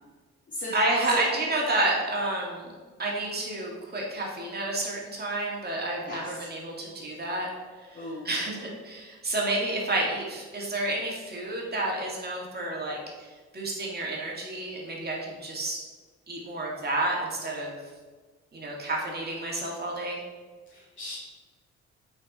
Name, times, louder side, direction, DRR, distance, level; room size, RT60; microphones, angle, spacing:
voice 1, 0.7-2.7 3.0-7.5 7.8-8.6 8.8-13.3 13.5-15.8 16.3-17.8 18.5-20.2, right 2 dB, 30° right, -2 dB, 2.2 m, -30 dB
voice 2, 6.1-6.5 8.0-8.3 20.7-21.1, left 2 dB, 40° left, -7 dB, 1.8 m, -37 dB
7.9 x 4.5 x 4.3 m, 1.4 s
cardioid pair, 90°, 30 cm